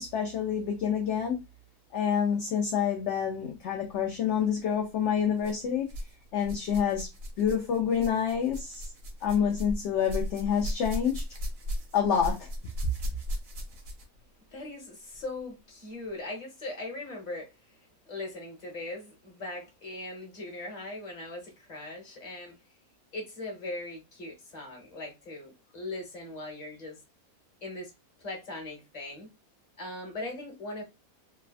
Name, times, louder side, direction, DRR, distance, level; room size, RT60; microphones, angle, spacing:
voice 1, 0.0-1.4 1.9-5.9 6.3-7.1 7.4-8.9 9.2-11.2 11.9-12.5, left 8 dB, 65° left, 0.7 m, -27 dB
sound 1, 4.4-4.6 5.4-6.1 6.4-14.2 15.1-15.2 16.0-16.1, equal, 70° right, 1.2 m, -37 dB
voice 2, 14.5-17.8 18.1-22.6 23.1-27.0 27.6-27.9 28.2-29.3 29.8-30.8, left 2 dB, 30° left, 1.1 m, -40 dB
3.3 x 2.2 x 2.3 m
omnidirectional pair, 1.5 m